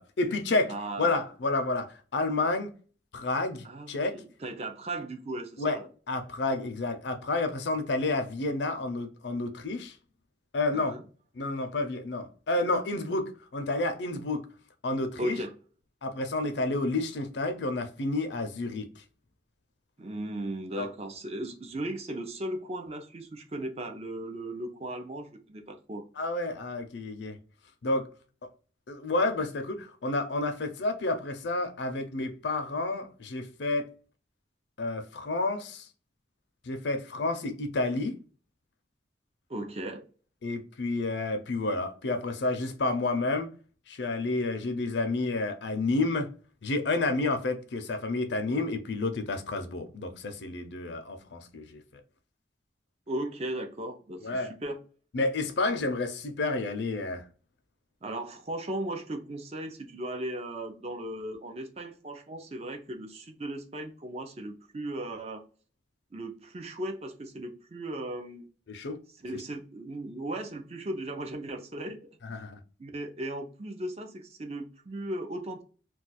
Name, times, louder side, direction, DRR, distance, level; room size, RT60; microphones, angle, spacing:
voice 1, 0.0-2.7 3.1-4.2 5.6-5.8 6.1-9.9 10.5-11.0 11.4-14.5 14.8-15.4 16.0-18.9 20.8-20.9 26.2-27.4 27.8-28.1 28.9-33.9 34.8-35.9 36.7-38.2 40.4-43.5 43.9-46.3 46.6-51.8 54.2-54.5 55.1-57.2 68.7-69.0 72.2-72.6, left 2 dB, 70° left, 0.5 m, -30 dB
voice 2, 0.7-1.2 3.6-5.9 10.7-11.0 15.2-15.5 20.0-26.0 39.5-40.0 53.1-54.8 58.0-65.4 66.1-68.4 69.2-72.1 72.8-75.6, right 1 dB, 35° right, 0.4 m, -37 dB
2.3 x 2.3 x 4.0 m
head